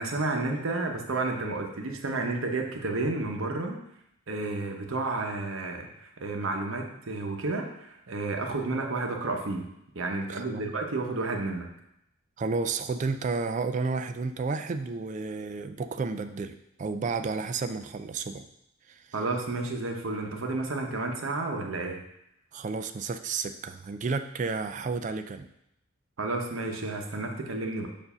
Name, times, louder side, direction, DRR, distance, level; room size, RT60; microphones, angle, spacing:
voice 1, 0.0-3.8 4.3-9.6 9.9-11.7 19.1-22.0 26.2-27.9, right 2 dB, 70° right, 2 dB, 0.8 m, -31 dB
voice 2, 10.3-10.7 12.4-18.4 18.9-19.1 22.5-25.5, right 4 dB, 35° right, 8 dB, 0.3 m, -32 dB
7.0 x 2.6 x 5.5 m, 0.81 s
head